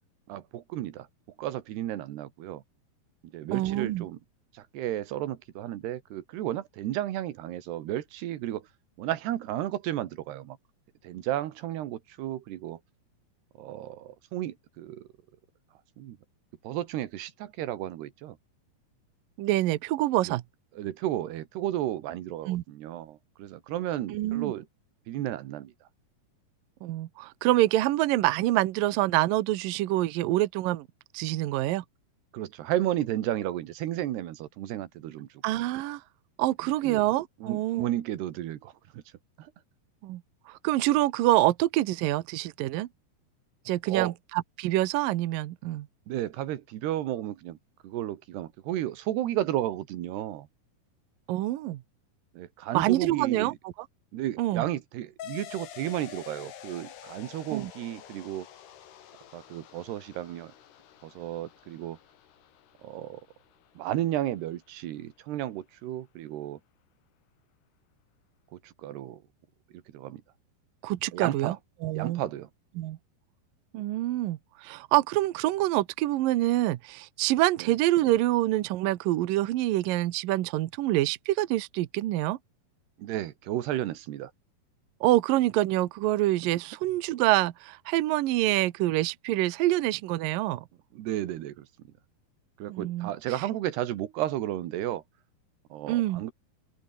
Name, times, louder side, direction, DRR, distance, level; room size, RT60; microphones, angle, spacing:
voice 1, 0.3-1.1 1.4-2.6 3.3-4.2 4.5-8.7 9.0-10.6 11.0-12.8 13.6-15.1 16.0-16.2 16.6-18.4 20.2-20.4 20.8-24.7 25.1-25.7 32.3-35.3 36.6-37.0 37.4-39.0 39.4-39.5 43.9-44.1 46.1-47.6 47.8-50.5 52.4-53.5 54.1-58.5 59.3-60.5 61.0-62.0 62.8-63.2 63.8-66.6 68.5-69.2 69.9-70.2 71.1-71.6 72.0-72.5 77.6-77.7 83.0-84.3 90.9-91.7 92.6-95.0 95.7-96.3, right 13 dB, 85° right, 3.6 m, -33 dB
voice 2, 3.5-4.1 19.4-20.4 22.5-22.6 24.1-24.5 26.8-30.9 31.1-31.8 35.4-36.0 36.4-37.9 40.0-40.2 40.5-42.9 43.7-45.9 51.3-51.8 52.7-53.7 54.4-54.7 57.5-57.7 70.8-71.6 71.8-72.2 72.8-73.0 73.7-82.4 85.0-90.6 92.7-93.1 95.9-96.2, right 16 dB, 70° right, 2.4 m, -26 dB
sound 1, 55.2-64.2, left 10 dB, 85° left, 4.3 m, -48 dB
open air
omnidirectional pair, 4.6 m